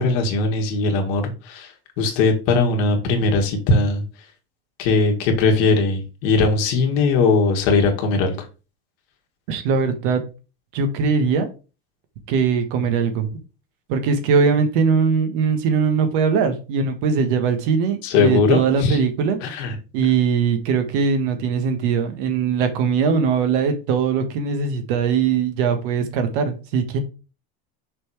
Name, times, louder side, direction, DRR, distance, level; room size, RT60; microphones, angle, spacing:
voice 1, 0.0-1.7 2.0-4.0 4.8-8.4 18.0-19.0 19.4-19.8, left 3 dB, 55° left, 2.0 m, -19 dB
voice 2, 9.5-10.2 10.7-11.5 12.3-13.4 13.9-19.4 19.9-27.0, right 5 dB, 65° right, 1.6 m, -20 dB
6.1 x 4.4 x 4.9 m
cardioid pair, 175°, 29 cm